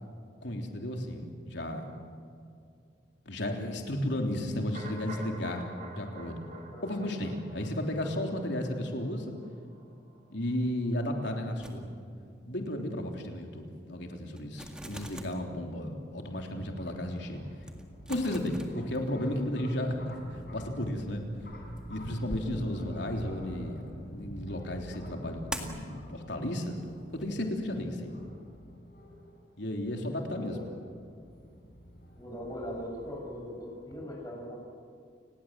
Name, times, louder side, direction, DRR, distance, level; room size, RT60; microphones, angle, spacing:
voice 1, 0.4-1.9 3.3-6.5 6.8-9.3 10.3-11.9 12.5-17.4 18.1-20.1 20.5-21.3 21.9-26.8 27.1-28.1 29.6-30.6, left 1 dB, 70° left, 2 dB, 3.5 m, -34 dB
sound 1, 4.7-10.6 10.9-11.0, right 2 dB, 40° right, 4.0 m, -48 dB
voice 2, 6.7-7.1 30.3-30.6 32.2-34.6, equal, 20° left, -1 dB, 7.1 m, -40 dB
sound 2, 11.6-12.4 12.7-12.9 13.4-13.5 13.9-14.0 14.3-15.6 16.1-16.2 16.8-16.9 17.1-17.2 17.6-19.5 19.8-23.5 25.5-25.9 26.5-27.3, right 1 dB, 5° right, 1.9 m, -44 dB
sound 3, 15.9-34.0, equal, 50° left, 5.8 m, -48 dB
30.0 x 20.0 x 7.6 m, 2.3 s
head